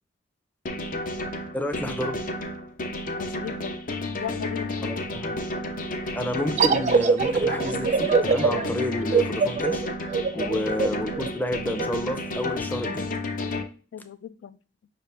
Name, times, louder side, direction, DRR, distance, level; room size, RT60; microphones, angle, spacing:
sound 1, 0.7-13.6, left 2 dB, 50° left, 0.7 m, -31 dB
voice 1, 1.5-2.2 4.8-5.4 6.2-9.8 10.3-13.1, left 1 dB, 10° left, 6 dB, 0.6 m, -30 dB
voice 2, 3.2-3.8 4.2-4.8 10.3-10.7 13.9-14.6, left 9 dB, 80° left, 13 dB, 0.3 m, -37 dB
sound 2, 6.6-11.9, right 5 dB, 40° right, 0.4 m, -23 dB
6.0 x 2.5 x 3.3 m, 0.36 s
head